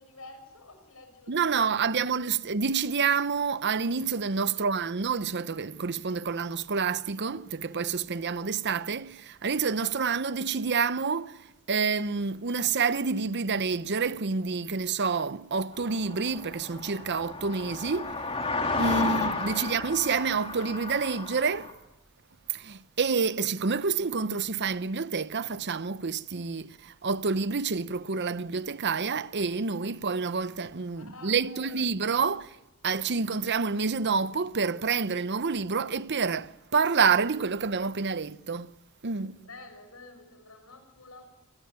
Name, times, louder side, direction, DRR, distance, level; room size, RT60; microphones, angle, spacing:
voice 1, 0.0-1.8 4.5-4.8 31.0-31.9 39.3-41.2, left 2 dB, 75° left, 6.5 m, -50 dB
voice 2, 1.3-11.4 11.7-18.1 18.8-21.7 22.5-32.5 32.8-38.7 39.0-39.4, right 5 dB, 50° right, 0.8 m, -28 dB
sound 1, 15.7-21.7, left 3 dB, 25° left, 2.6 m, -33 dB
28.5 x 18.0 x 9.7 m
head